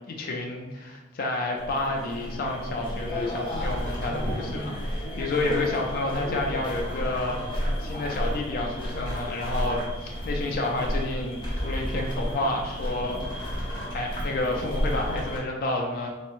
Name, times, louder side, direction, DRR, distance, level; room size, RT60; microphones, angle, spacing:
voice 1, 0.0-16.1, left 2 dB, 45° left, 0 dB, 0.3 m, -30 dB
sound 1, 1.5-15.4, equal, 25° left, 0.8 m, -32 dB
sound 2, 3.5-4.2 6.5-7.6 8.7-9.7 11.4-12.1 13.0-14.0 14.8-15.4, equal, 20° right, 1.0 m, -37 dB
3.4 x 2.0 x 3.0 m, 1.1 s
head